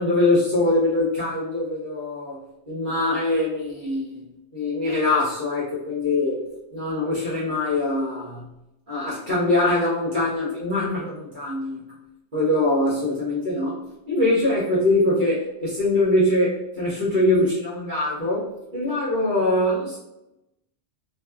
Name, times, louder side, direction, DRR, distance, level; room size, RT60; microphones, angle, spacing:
voice 1, 0.0-2.4 2.7-4.2 4.5-6.4 6.7-8.5 8.9-11.8 12.3-13.8 14.1-18.5 18.7-20.0, left 2 dB, 50° right, -9 dB, 1.1 m, -23 dB
2.7 x 2.2 x 2.3 m, 0.93 s
omnidirectional pair, 1.1 m